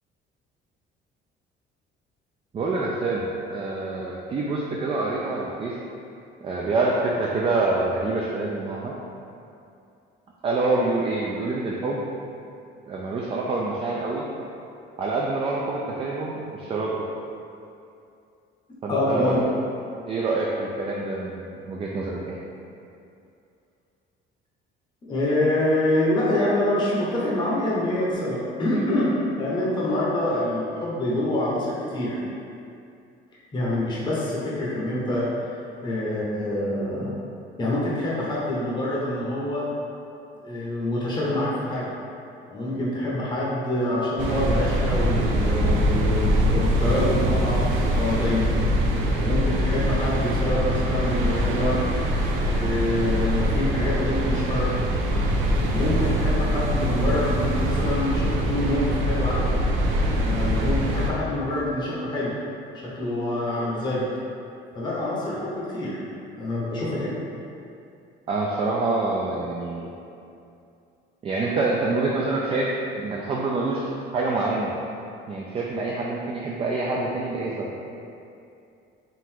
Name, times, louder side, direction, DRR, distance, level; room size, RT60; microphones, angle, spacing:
voice 1, 2.5-5.8 6.4-8.9 10.4-12.0 12.9-14.3 15.0-17.0 18.8-19.5 20.0-22.4 68.3-69.9 71.2-74.7 75.3-77.7, right 3 dB, 30° right, -3 dB, 0.4 m, -26 dB
voice 2, 18.9-19.5 25.0-32.2 33.5-37.1 37.6-39.7 40.4-41.9 42.5-48.5 49.2-51.8 52.4-54.7 55.5-59.5 60.0-62.3 62.7-64.1 64.7-66.0 66.4-67.2, left 1 dB, 25° left, -7 dB, 0.8 m, -26 dB
sound 1, 44.2-61.1, equal, 85° right, 0.5 m, -23 dB
3.8 x 2.5 x 4.4 m, 2.6 s
cardioid pair, 130°, 19 cm